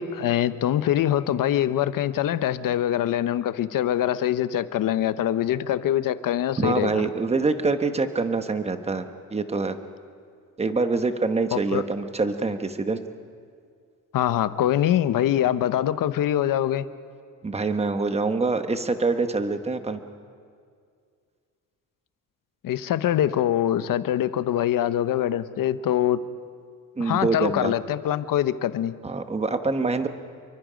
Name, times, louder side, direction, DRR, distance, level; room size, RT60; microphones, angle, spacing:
voice 1, 0.0-7.1 11.5-11.8 14.1-16.9 22.6-26.2 27.0-28.9, left 11 dB, 75° left, 13 dB, 0.9 m, -24 dB
voice 2, 6.6-9.0 9.3-9.8 10.6-13.0 17.4-20.0 27.0-27.7 29.0-30.1, right 3 dB, 20° right, 8 dB, 1.1 m, -25 dB
28.5 x 23.5 x 5.1 m, 2.2 s
cardioid pair, 145°, 33 cm